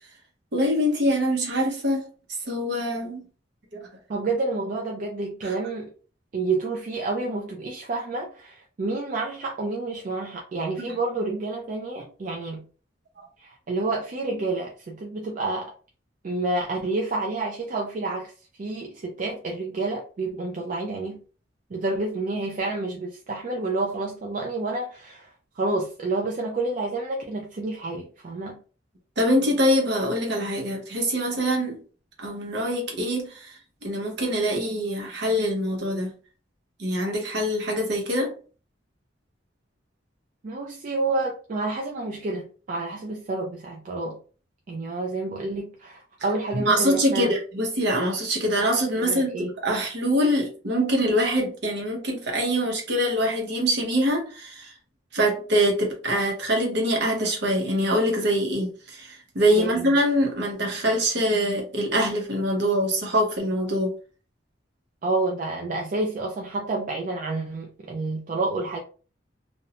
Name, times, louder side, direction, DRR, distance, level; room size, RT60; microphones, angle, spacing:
voice 1, 0.5-2.0 2.5-3.2 3.7-3.9 5.4-5.5 10.8-10.9 13.2-13.3 29.2-31.8 32.2-36.1 36.8-38.3 46.5-49.4 49.6-54.7 55.1-63.9, equal, 65° right, 0.8 m, -24 dB
voice 2, 4.1-5.9 6.3-12.6 13.4-15.7 16.2-18.3 18.6-21.2 21.7-25.3 25.6-28.6 40.4-44.2 44.7-47.3 49.0-49.5 59.6-59.9 65.0-68.8, right 2 dB, 45° right, 0.4 m, -29 dB
2.6 x 2.0 x 2.8 m
head